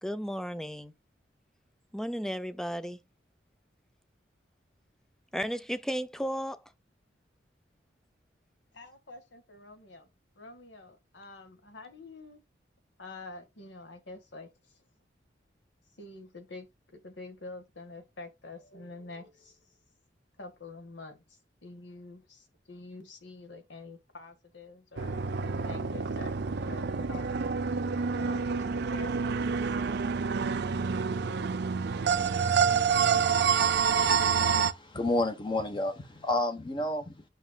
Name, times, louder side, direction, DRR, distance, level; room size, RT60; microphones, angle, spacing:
voice 1, 0.0-0.9 1.9-3.0 5.3-6.6, equal, 5° left, 0.5 m, -34 dB
voice 2, 8.7-10.1 10.4-12.4 13.0-14.8 15.9-19.8 20.4-27.3 28.1-29.1, left 3 dB, 75° left, 1.6 m, -47 dB
sound 1, 25.0-34.7, right 6 dB, 65° right, 0.5 m, -28 dB
voice 3, 34.0-37.2, left 2 dB, 25° left, 1.0 m, -31 dB
9.3 x 6.1 x 2.3 m
head